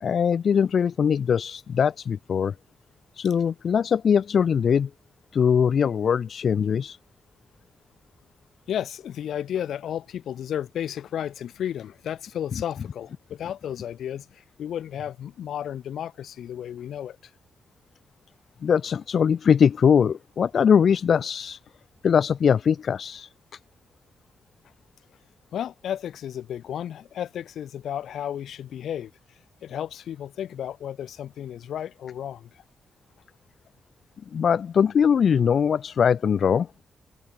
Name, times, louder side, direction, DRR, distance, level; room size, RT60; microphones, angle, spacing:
voice 1, 0.0-2.5 3.2-4.9 5.3-7.0 18.6-21.6 22.0-23.3 34.3-36.7, left 7 dB, 55° left, 1.4 m, -21 dB
voice 2, 8.7-17.2 25.5-29.1 29.6-32.5, left 10 dB, 85° left, 6.5 m, -33 dB
cardioid pair, 120°, 0 cm